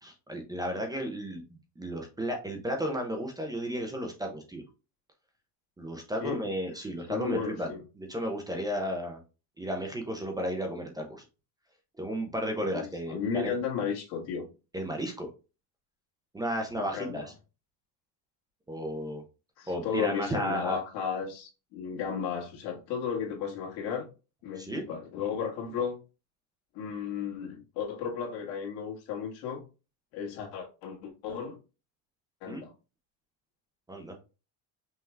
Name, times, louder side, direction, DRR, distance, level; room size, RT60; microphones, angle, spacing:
voice 1, 0.0-1.4 1.8-4.6 5.8-7.7 8.0-9.2 9.6-11.2 12.0-13.5 14.7-15.3 16.3-17.2 18.7-19.2 19.7-20.8 24.6-24.8 32.5-32.6 33.9-34.2, equal, 10° right, 0.4 m, -33 dB
voice 2, 7.1-7.8 12.6-14.4 16.8-17.3 19.6-24.1 24.4-26.0 26.7-29.6 30.1-31.6 32.4-32.7, left 7 dB, 65° left, 1.7 m, -34 dB
5.5 x 2.3 x 3.2 m
cardioid pair, 150°, 47 cm